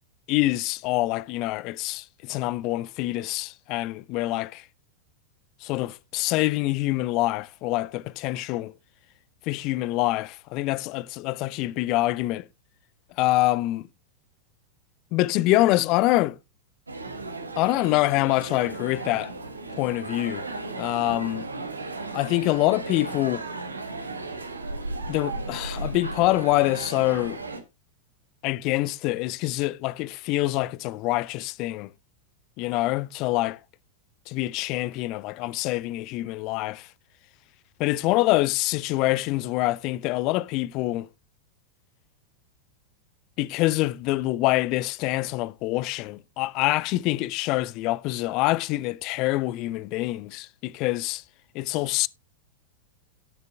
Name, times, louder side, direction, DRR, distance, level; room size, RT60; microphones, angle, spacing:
voice 1, 0.3-4.6 5.6-8.7 9.5-12.4 13.2-13.8 15.1-16.4 17.6-19.3 19.8-20.4 20.7-21.5 22.1-23.5 25.1-27.4 28.4-31.9 32.6-33.6 34.3-36.9 37.8-41.1 43.4-51.2 51.5-52.1, left 18 dB, 40° left, 0.4 m, -25 dB
sound 1, 16.9-27.6, right 3 dB, 80° right, 1.3 m, -35 dB
17.5 x 6.7 x 2.3 m
figure-of-eight pair, 90°, 0 cm